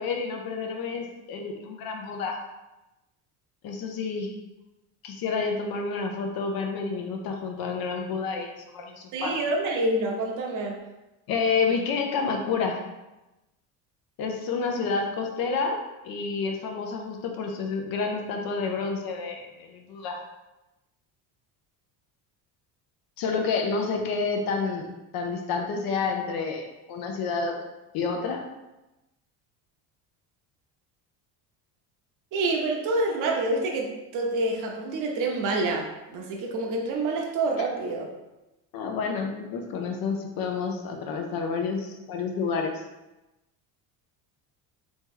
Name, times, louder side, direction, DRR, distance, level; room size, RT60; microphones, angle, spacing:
voice 1, 0.0-2.4 3.6-4.3 5.0-9.3 11.3-12.8 14.2-15.8 16.0-20.2 23.2-24.9 25.1-27.6 27.9-28.4 38.7-42.7, left 4 dB, 55° left, 3 dB, 0.6 m, -29 dB
voice 2, 9.1-10.8 32.3-38.1, right 2 dB, 45° right, 0 dB, 0.7 m, -27 dB
3.0 x 2.9 x 3.7 m, 1.0 s
cardioid pair, 135°, 42 cm